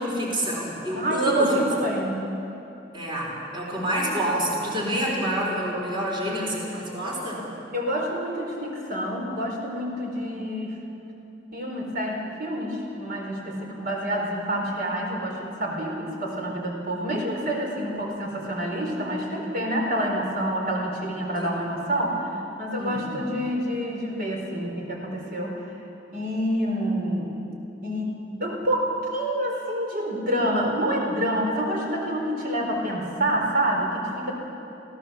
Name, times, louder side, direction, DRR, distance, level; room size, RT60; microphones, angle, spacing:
voice 1, 0.0-1.5 2.9-7.4 21.4-21.6 22.8-23.2, equal, 25° right, -2 dB, 3.7 m, -27 dB
voice 2, 0.9-2.3 7.7-10.8 11.5-25.6 26.1-27.3 27.8-34.3, right 1 dB, 55° right, 0 dB, 4.4 m, -27 dB
26.0 x 16.5 x 7.2 m, 2.9 s
head